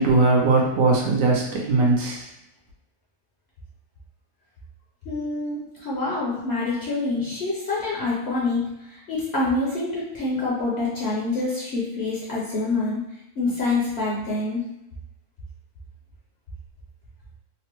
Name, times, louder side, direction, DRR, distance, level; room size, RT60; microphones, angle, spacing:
voice 1, 0.0-2.3, right 3 dB, 65° right, -1 dB, 1.0 m, -20 dB
voice 2, 5.1-13.0 13.4-14.6, left 3 dB, 55° left, -6 dB, 0.8 m, -26 dB
3.2 x 2.1 x 2.9 m, 0.91 s
omnidirectional pair, 1.6 m